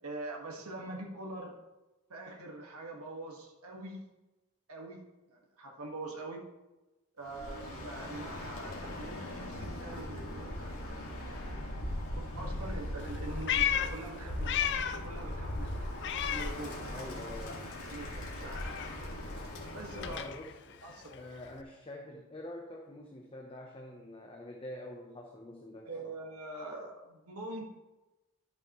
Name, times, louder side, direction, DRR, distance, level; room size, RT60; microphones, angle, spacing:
voice 1, 0.0-1.6 2.1-4.0 4.7-5.0 5.3-6.4 7.2-10.5 11.2-15.8 16.3-16.8 17.9-18.8 19.7-20.2 20.8-21.1 25.8-27.6, right 2 dB, 80° right, 0 dB, 1.7 m, -44 dB
Bird, 7.2-20.3, left 1 dB, 80° left, 2.1 m, -39 dB
Meow, 13.0-15.1 15.4-17.2 17.4-21.6, left 10 dB, 50° left, 0.5 m, -35 dB
voice 2, 16.9-17.7 19.9-26.1, left 1 dB, 25° left, 0 dB, 0.8 m, -46 dB
11.0 x 7.1 x 3.1 m, 1.1 s
head